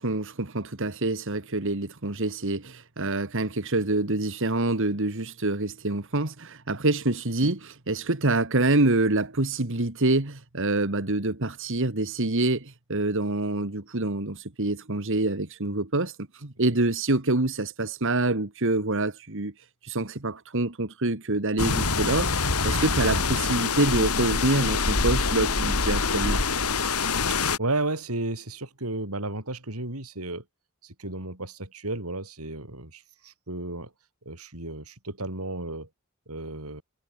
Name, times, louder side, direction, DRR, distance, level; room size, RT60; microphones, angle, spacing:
voice 1, 0.0-19.5 19.8-26.4, right 2 dB, 60° right, 2.0 m, -26 dB
sound 1, 21.6-27.6, left 4 dB, 85° left, 3.7 m, -25 dB
voice 2, 27.3-30.4 30.8-33.9 34.3-35.9 36.3-36.8, right 2 dB, 80° right, 5.8 m, -33 dB
head